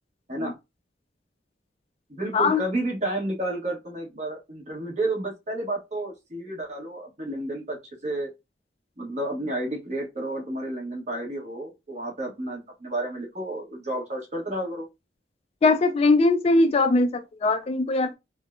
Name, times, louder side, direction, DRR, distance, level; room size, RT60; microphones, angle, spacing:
voice 1, 2.1-7.8 8.0-8.3 9.0-14.9, right 1 dB, 40° right, 1.1 m, -31 dB
voice 2, 15.6-18.2, left 3 dB, 35° left, 0.3 m, -21 dB
3.5 x 2.1 x 2.2 m
head